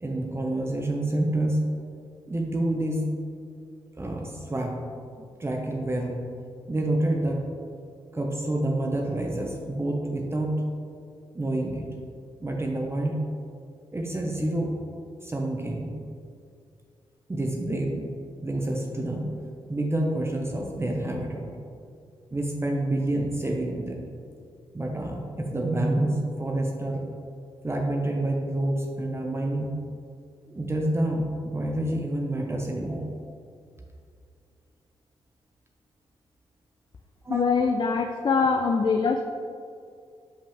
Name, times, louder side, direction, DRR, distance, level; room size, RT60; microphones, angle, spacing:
voice 1, 0.0-1.6 2.3-3.1 4.0-4.8 5.2-6.2 6.6-7.4 8.1-10.6 11.3-11.9 12.4-13.3 13.9-14.8 15.2-16.0 17.3-18.1 18.4-19.3 19.7-21.6 22.3-24.1 24.7-27.1 27.6-29.7 30.5-33.1 37.2-37.4, right 1 dB, 25° right, 0 dB, 0.8 m, -28 dB
voice 2, 37.3-39.2, left 5 dB, 40° left, 4 dB, 0.4 m, -23 dB
5.4 x 5.1 x 3.5 m, 2.3 s
supercardioid pair, 50°, 11 cm